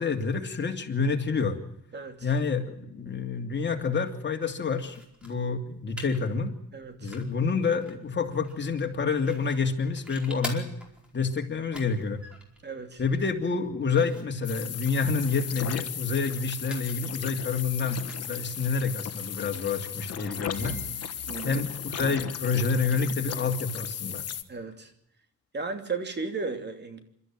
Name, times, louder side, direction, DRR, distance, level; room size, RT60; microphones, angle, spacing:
voice 1, 0.0-1.6 2.2-5.0 5.2-6.5 7.0-10.7 11.1-12.2 13.0-20.8 21.4-24.2, left 5 dB, 35° left, 3 dB, 2.9 m, -28 dB
voice 2, 1.9-2.3 6.7-7.1 12.6-13.0 21.3-21.6 24.5-24.9 25.5-27.0, right 4 dB, 35° right, 7 dB, 2.9 m, -35 dB
sound 1, 4.8-20.0, left 1 dB, 5° right, 4.7 m, -48 dB
sound 2, 14.4-24.4, left 9 dB, 55° left, 1.4 m, -36 dB
sound 3, 19.6-21.9, right 4 dB, 75° right, 4.1 m, -46 dB
26.0 x 13.0 x 9.0 m, 0.75 s
cardioid pair, 90°, 30 cm